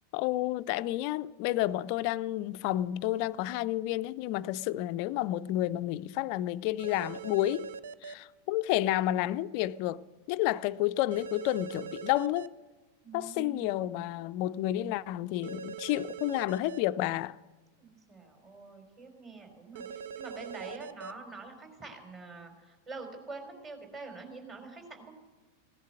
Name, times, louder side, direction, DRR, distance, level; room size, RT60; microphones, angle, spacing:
voice 1, 0.1-7.7 8.0-10.0 10.3-12.5 13.1-17.4, left 14 dB, 45° left, 0.4 m, -30 dB
sound 1, 6.8-8.1 11.1-12.5 15.4-16.8 19.7-21.1, right 7 dB, 60° right, 0.6 m, -42 dB
voice 2, 13.0-13.7 17.8-25.1, right 3 dB, 25° right, 3.8 m, -45 dB
16.5 x 11.0 x 7.6 m
figure-of-eight pair, 90°, 0 cm